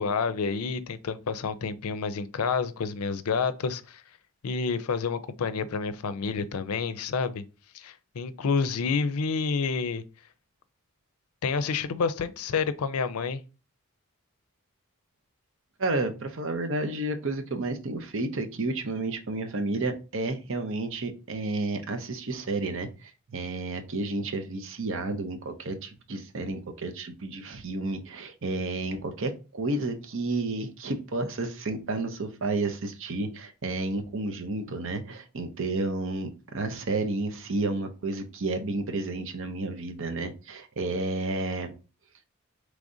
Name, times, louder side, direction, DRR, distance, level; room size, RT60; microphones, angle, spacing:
voice 1, 0.0-4.0 4.4-7.4 7.7-10.0 11.4-13.4, left 5 dB, 85° left, 0.5 m, -29 dB
voice 2, 15.8-41.7, right 2 dB, 60° right, 0.7 m, -31 dB
4.9 x 3.2 x 2.6 m
head